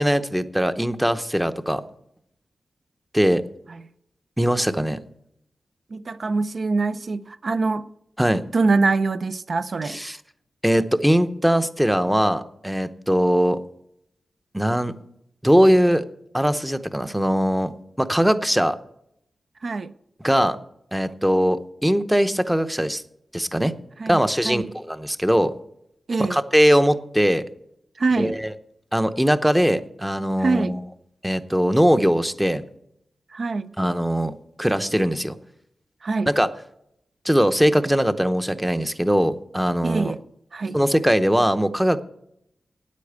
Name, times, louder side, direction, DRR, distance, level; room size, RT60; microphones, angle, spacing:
voice 1, 0.0-1.8 3.1-3.4 4.4-5.0 8.2-8.4 9.8-10.2 10.6-13.6 14.5-14.9 15.4-16.0 16.3-17.7 18.0-18.8 20.2-20.6 20.9-23.0 23.3-23.7 24.1-25.5 26.2-27.4 28.2-28.5 28.9-30.8 31.2-32.6 33.8-35.4 36.3-36.5 37.2-40.1 40.7-42.0, equal, 5° right, 0.7 m, -20 dB
voice 2, 5.9-7.8 8.5-10.0 19.6-19.9 24.0-24.7 26.1-26.4 28.0-28.3 30.4-30.8 33.3-33.7 36.0-36.3 39.8-40.2 40.5-40.8, right 3 dB, 55° right, 0.6 m, -24 dB
9.4 x 8.4 x 8.1 m
wide cardioid pair, 110°, 0 cm